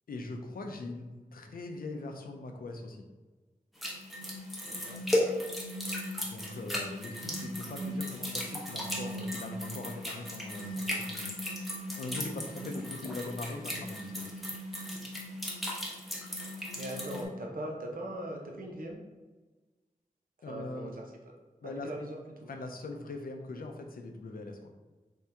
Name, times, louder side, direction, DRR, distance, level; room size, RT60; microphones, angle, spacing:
voice 1, 0.1-3.0 6.2-11.3 12.0-14.3 20.4-20.9 21.6-21.9 22.5-24.7, left 2 dB, 85° left, 4 dB, 0.5 m, -41 dB
sound 1, 3.8-17.2, equal, ahead, 0.9 m, -36 dB
voice 2, 4.6-5.2 14.9-15.0 16.7-19.0 20.5-21.0 21.6-22.5, right 1 dB, 80° right, 0 dB, 0.7 m, -40 dB
3.5 x 2.8 x 3.4 m, 1.2 s
wide cardioid pair, 100°, 15 cm